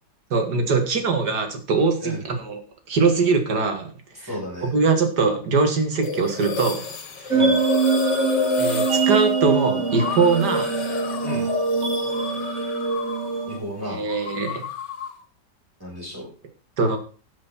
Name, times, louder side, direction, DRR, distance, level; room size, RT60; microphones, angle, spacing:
voice 1, 0.3-2.6 2.9-3.9 4.2-4.3 4.6-6.8 7.2-7.3 8.6-10.7 13.8-14.6 16.8-17.0, right 4 dB, 65° right, 6 dB, 2.5 m, -22 dB
voice 2, 4.2-4.7 7.3-7.6 11.2-11.5 13.4-14.0 15.8-16.3, equal, 10° right, -4 dB, 6.2 m, -33 dB
sound 1, 6.0-13.4 13.7-15.2, left 6 dB, 70° left, 2.0 m, -30 dB
sound 2, 7.3-13.6, right 4 dB, 45° right, 1.6 m, -23 dB
13.0 x 7.6 x 4.4 m, 0.37 s
omnidirectional pair, 2.0 m